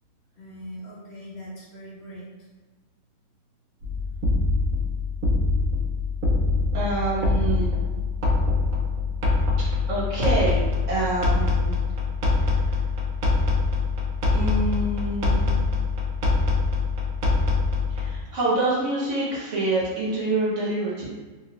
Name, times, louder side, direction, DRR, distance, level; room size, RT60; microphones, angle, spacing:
voice 1, 0.3-2.5, equal, 50° left, -7 dB, 1.2 m, -41 dB
sound 1, 3.8-18.2, left 3 dB, 75° right, 1.0 m, -24 dB
voice 2, 6.7-7.7 9.9-10.6 10.9-11.8 14.3-15.5 17.9-21.0, right 2 dB, 55° right, -8 dB, 1.5 m, -26 dB
3.1 x 2.3 x 3.0 m, 1.3 s
omnidirectional pair, 1.5 m